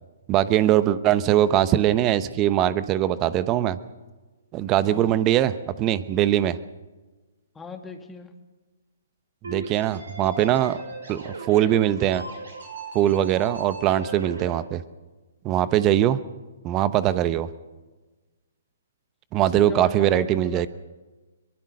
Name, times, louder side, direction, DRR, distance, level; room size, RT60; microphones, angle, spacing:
voice 1, 0.3-3.8 4.5-6.6 9.4-10.8 11.1-12.2 12.9-14.8 15.4-16.2 16.6-17.5 19.3-20.7, right 12 dB, 25° right, 14 dB, 1.0 m, -21 dB
voice 2, 4.8-5.2 7.5-8.3 19.5-20.7, left 4 dB, 10° left, 5 dB, 2.2 m, -39 dB
sound 1, 9.4-14.5, right 3 dB, 80° right, 7.2 m, -37 dB
23.0 x 20.5 x 6.6 m, 1.2 s
hypercardioid pair, 135°, 0 cm